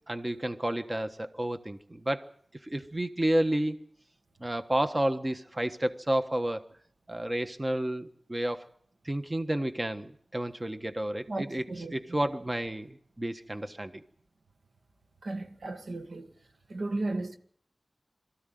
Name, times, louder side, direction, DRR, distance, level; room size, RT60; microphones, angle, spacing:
voice 1, 0.1-2.3 2.6-3.8 4.4-6.7 7.1-8.7 9.0-14.0, right 1 dB, 25° right, 1.3 m, -31 dB
voice 2, 11.3-11.9 15.2-16.3 16.7-17.4, right 2 dB, 85° right, 1.8 m, -34 dB
23.5 x 14.5 x 9.3 m
wide cardioid pair, 80°, 0 cm